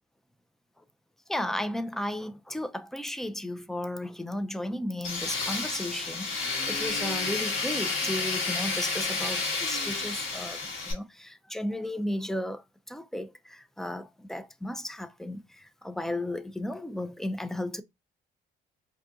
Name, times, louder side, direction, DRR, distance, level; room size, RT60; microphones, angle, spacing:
voice 1, 1.3-10.6 10.9-17.8, left 1 dB, ahead, 0.3 m, -34 dB
Tools, 5.0-10.9, left 3 dB, 75° left, 1.4 m, -31 dB
2.8 x 2.4 x 3.5 m
cardioid pair, 90°, 20 cm